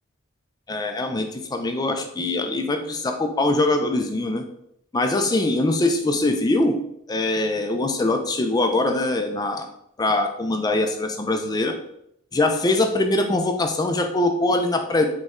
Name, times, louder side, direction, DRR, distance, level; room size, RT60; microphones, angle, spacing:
voice 1, 0.7-4.4 4.9-6.8 7.1-9.7 10.0-11.7 12.3-15.1, left 2 dB, 20° left, 5 dB, 0.4 m, -22 dB
5.1 x 2.2 x 3.5 m, 0.74 s
head